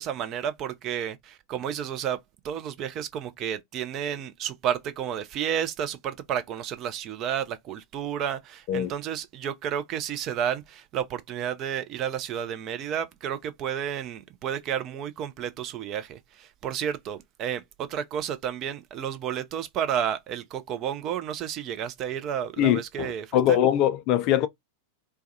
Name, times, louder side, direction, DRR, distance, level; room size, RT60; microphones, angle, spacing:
voice 1, 0.0-2.2 2.4-23.6, right 9 dB, 35° right, 0.4 m, -31 dB
voice 2, 22.6-24.5, left 11 dB, 40° left, 0.3 m, -22 dB
2.2 x 2.1 x 2.6 m
figure-of-eight pair, 90°, 0 cm